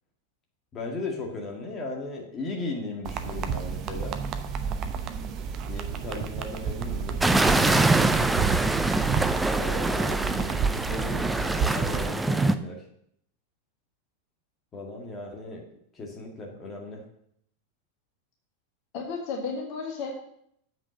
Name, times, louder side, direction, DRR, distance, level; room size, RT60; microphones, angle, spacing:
voice 1, 0.7-4.2 5.6-8.6 9.5-12.8 14.7-17.1, left 2 dB, 25° left, 0 dB, 2.0 m, -37 dB
sound 1, 3.0-12.1, right 6 dB, 35° right, 0.8 m, -30 dB
sound 2, 7.2-12.5, right 2 dB, 5° right, 0.5 m, -24 dB
voice 2, 18.9-20.1, left 4 dB, 45° left, 0 dB, 1.8 m, -33 dB
7.6 x 5.9 x 6.6 m, 0.71 s
figure-of-eight pair, 90°, 0 cm